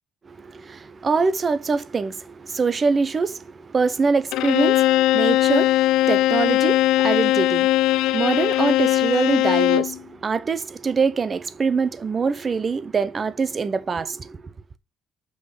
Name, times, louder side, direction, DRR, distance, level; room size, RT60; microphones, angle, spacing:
voice 1, 0.3-14.4, right 4 dB, 25° right, 0.6 m, -24 dB
Bowed string instrument, 4.3-10.0, left 15 dB, 80° left, 0.4 m, -19 dB
6.4 x 5.4 x 5.4 m
cardioid pair, 165°, 0 cm